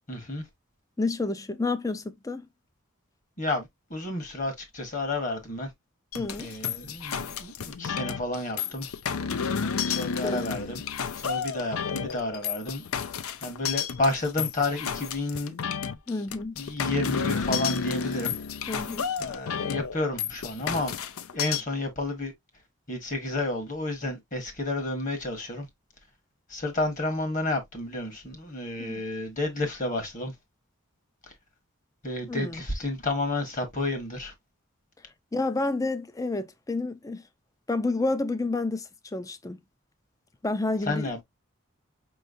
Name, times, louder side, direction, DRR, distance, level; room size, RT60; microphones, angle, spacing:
voice 1, 0.1-0.4 3.4-5.7 6.4-8.9 9.9-10.8 11.1-12.8 13.4-15.5 16.6-18.4 19.2-21.0 21.3-22.3 22.9-25.7 26.5-30.3 32.0-34.3 40.9-41.2, left 2 dB, 35° left, 1.3 m, -31 dB
voice 2, 1.0-2.5 6.1-6.5 10.2-10.4 16.1-16.6 18.7-19.1 28.8-29.0 32.3-32.6 35.3-37.2 37.7-39.6 40.4-41.2, left 3 dB, 15° left, 0.4 m, -30 dB
sound 1, 6.1-21.6, left 6 dB, 80° left, 0.5 m, -31 dB
5.4 x 3.1 x 2.5 m
head